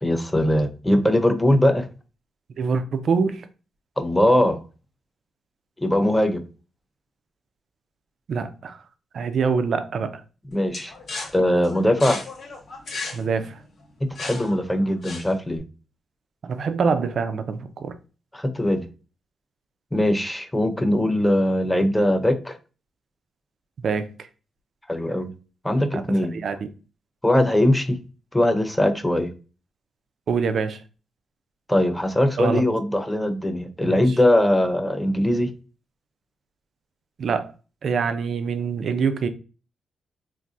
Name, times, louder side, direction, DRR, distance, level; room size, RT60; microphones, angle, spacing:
voice 1, 0.0-1.9 4.0-4.6 5.8-6.4 10.5-10.9 11.3-12.2 14.0-15.6 18.3-18.8 19.9-22.6 24.9-25.3 25.6-26.3 27.2-28.0 28.3-29.3 31.7-35.5, left 1 dB, 10° left, 0.5 m, -21 dB
voice 2, 2.6-3.5 8.3-8.8 9.1-10.2 13.1-13.6 16.4-18.0 23.8-24.3 25.9-26.0 26.3-26.6 30.3-30.8 32.4-32.6 33.8-34.2 37.2-37.5 37.8-39.3, right 5 dB, 60° right, 0.4 m, -25 dB
sound 1, 10.7-15.6, left 3 dB, 60° left, 0.8 m, -36 dB
3.9 x 2.5 x 2.3 m
cardioid pair, 85°, 0 cm